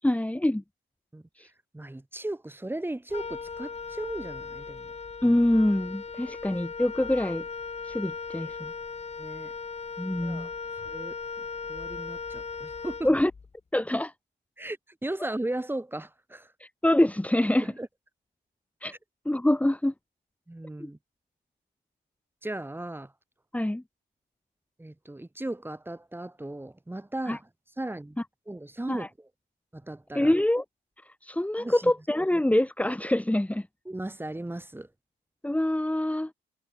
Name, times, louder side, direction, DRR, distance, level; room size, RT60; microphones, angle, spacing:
voice 1, 0.0-0.6 1.4-1.5 5.2-7.4 7.8-8.7 10.0-10.5 13.0-13.3 13.7-14.1 16.6-17.7 18.8-18.9 19.2-19.9 20.8-20.9 23.5-23.8 27.3-27.4 28.9-29.1 30.1-30.6 31.1-33.7 35.4-36.3, left 1 dB, 5° left, 5.2 m, -25 dB
voice 2, 1.7-4.9 6.3-6.4 9.2-9.5 10.2-10.5 10.8-11.2 11.7-13.1 14.6-16.5 17.6-17.9 18.9-19.0 20.5-21.0 22.4-23.1 24.8-27.4 27.8-28.2 28.5-29.1 29.7-30.3 31.6-31.9 33.8-34.9, right 1 dB, 10° right, 7.9 m, -36 dB
Wind instrument woodwind instrument, 3.1-13.5, left 5 dB, 30° left, 3.3 m, -38 dB
cardioid pair, 90°, 20 cm